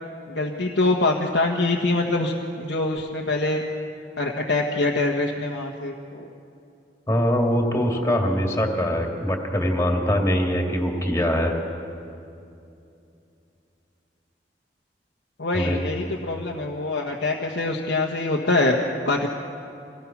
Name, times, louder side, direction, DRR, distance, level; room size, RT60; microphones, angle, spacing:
voice 1, 0.3-3.6 4.2-6.3 15.4-19.3, left 2 dB, 85° left, -1 dB, 1.4 m, -24 dB
voice 2, 7.1-11.6 15.5-15.8, equal, 15° left, 1 dB, 2.4 m, -23 dB
25.0 x 18.5 x 6.1 m, 2.6 s
head